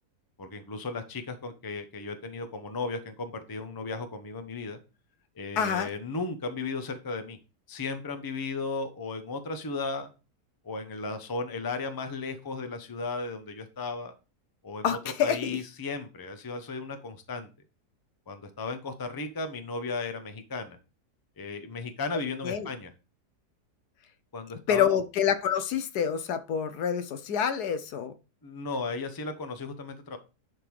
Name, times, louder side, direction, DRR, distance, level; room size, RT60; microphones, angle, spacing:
voice 1, 0.4-4.8 5.4-7.4 7.7-10.1 10.6-14.1 14.6-17.5 18.3-20.8 21.4-22.9 24.3-24.9 28.4-30.2, left 3 dB, 20° left, 0.7 m, -35 dB
voice 2, 5.6-5.9 14.8-15.6 22.4-22.7 24.7-28.1, left 8 dB, 75° left, 1.3 m, -27 dB
10.5 x 3.8 x 4.7 m
omnidirectional pair, 1.7 m